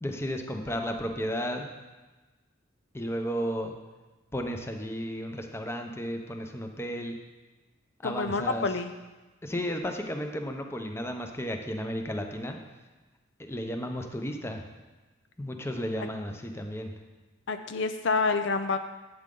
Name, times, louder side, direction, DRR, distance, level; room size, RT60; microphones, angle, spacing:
voice 1, 0.0-1.7 2.9-3.7 4.3-7.2 8.0-8.7 9.4-12.6 13.4-14.7 15.4-16.9, equal, 15° left, 4 dB, 0.7 m, -33 dB
voice 2, 8.0-8.9 17.5-18.8, left 4 dB, 65° left, 9 dB, 0.5 m, -28 dB
11.0 x 8.7 x 3.8 m, 1.2 s
head